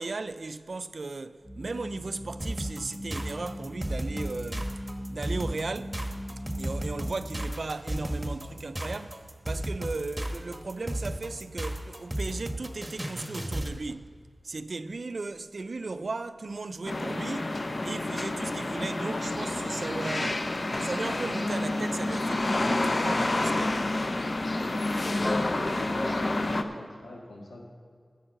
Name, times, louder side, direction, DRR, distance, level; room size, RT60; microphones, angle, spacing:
voice 1, 0.0-4.7 5.1-6.0 6.6-14.1 14.4-17.6 17.8-20.5 20.8-23.8, right 3 dB, 65° right, 0.4 m, -36 dB
sound 1, 1.4-7.4, equal, 30° left, 1.6 m, -40 dB
sound 2, 2.4-13.8, right 1 dB, 10° right, 1.1 m, -34 dB
sound 3, 16.9-26.6, left 2 dB, 50° left, 0.7 m, -29 dB
voice 2, 25.1-27.6, left 1 dB, 85° left, 1.9 m, -40 dB
11.0 x 8.2 x 6.5 m
wide cardioid pair, 70°, 0 cm